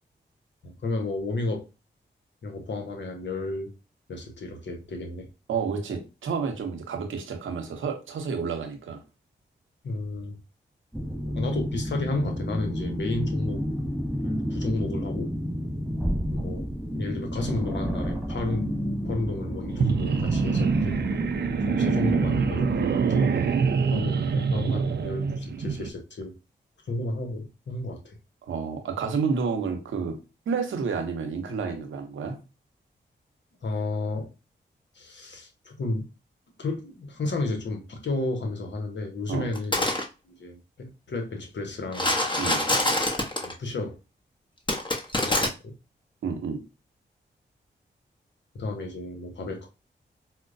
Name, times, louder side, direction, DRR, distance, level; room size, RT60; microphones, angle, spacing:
voice 1, 0.6-1.6 2.4-3.7 4.1-5.3 9.8-10.4 11.3-13.7 14.2-15.3 16.3-16.7 16.9-18.7 19.0-21.0 21.7-23.3 23.9-26.3 26.9-28.2 33.6-34.3 34.9-36.0 36.6-39.9 40.2-42.1 43.4-44.0 45.2-45.7 48.5-49.7, left 2 dB, 65° left, 1.0 m, -32 dB
voice 2, 5.5-9.0 24.7-24.8 28.5-30.1 30.5-32.4 39.3-39.5 42.4-42.6 46.2-46.6, right 5 dB, 90° right, 0.7 m, -30 dB
sound 1, 10.9-22.9, equal, 5° left, 1.7 m, -31 dB
sound 2, 19.7-25.9, right 5 dB, 60° right, 0.5 m, -25 dB
sound 3, 39.5-40.0 41.9-43.5 44.7-45.5, left 1 dB, 25° left, 1.0 m, -25 dB
4.4 x 2.1 x 2.6 m
supercardioid pair, 40°, 20 cm